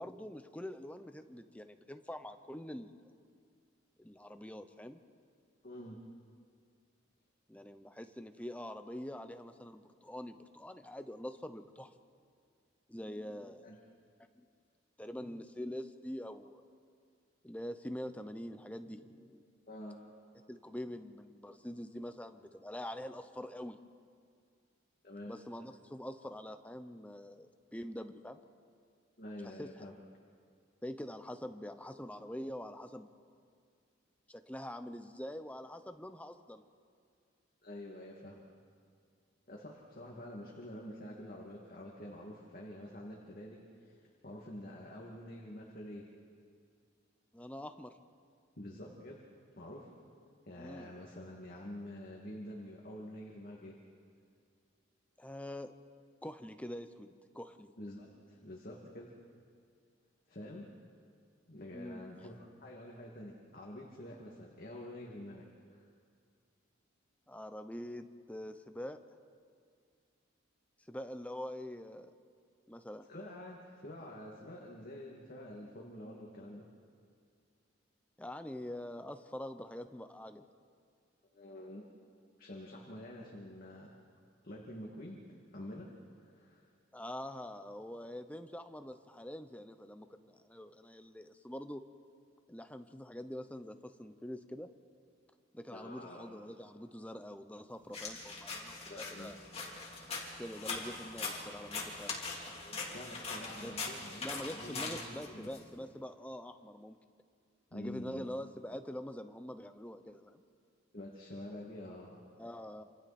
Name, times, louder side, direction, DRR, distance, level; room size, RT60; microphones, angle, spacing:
voice 1, 0.0-3.0 4.0-5.0 7.5-11.9 12.9-13.7 15.0-16.6 17.4-19.4 20.5-23.8 25.3-28.4 29.4-29.9 30.8-33.1 34.3-36.6 47.3-47.9 50.6-50.9 55.2-55.7 56.2-57.7 61.7-62.1 67.3-69.0 70.9-72.1 72.7-73.0 78.2-80.4 86.9-91.8 92.5-94.7 95.5-99.4 100.4-102.2 103.6-103.8 104.2-107.0 107.7-110.4 112.4-112.8, left 1 dB, 5° left, 8 dB, 0.9 m, -45 dB
voice 2, 5.6-6.0 13.6-13.8 19.7-20.0 25.0-25.3 29.2-30.0 37.6-38.4 39.5-46.0 48.6-49.2 49.6-49.9 50.5-53.7 57.8-59.1 60.3-60.7 61.5-65.4 65.7-65.8 73.1-76.6 81.3-81.8 82.4-83.9 84.4-85.2 85.5-85.9 86.1-86.7 95.7-96.4 98.9-99.3 102.5-105.5 107.7-108.3 110.9-112.2, left 1 dB, 50° left, -2 dB, 2.5 m, -47 dB
sound 1, 97.9-105.6, left 3 dB, 30° left, 3.3 m, -42 dB
28.0 x 27.5 x 4.4 m, 2.2 s
head